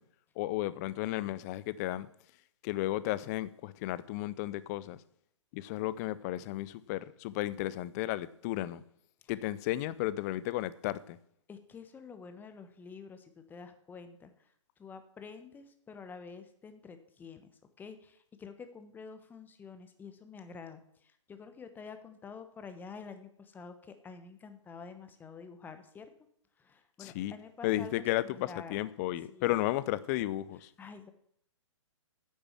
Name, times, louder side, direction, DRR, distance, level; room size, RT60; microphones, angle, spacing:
voice 1, 0.4-2.1 2.6-5.0 5.5-8.8 9.3-11.2 27.0-27.3 27.6-30.7, left 16 dB, 35° left, 0.6 m, -33 dB
voice 2, 11.5-26.1 26.6-28.8 29.3-29.6 30.8-31.1, left 5 dB, 10° left, 1.1 m, -48 dB
9.9 x 6.8 x 7.4 m
hypercardioid pair, 130°, 16 cm